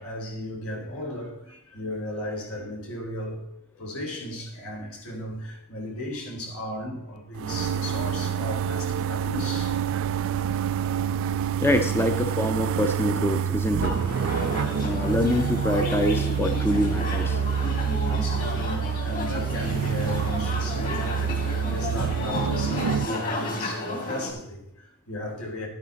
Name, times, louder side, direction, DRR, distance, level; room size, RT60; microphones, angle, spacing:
voice 1, 0.0-3.4 3.8-10.1 10.7-11.2 14.5-15.2 18.0-25.7, left 1 dB, 75° left, 4.0 m, -36 dB
sound 1, 7.3-23.1, right 7 dB, 65° right, 0.3 m, -27 dB
voice 2, 11.6-14.0 14.8-17.4, left 1 dB, 10° left, 0.7 m, -25 dB
sound 2, 13.8-24.3, left 2 dB, 40° left, 3.1 m, -33 dB
11.5 x 9.8 x 4.1 m
head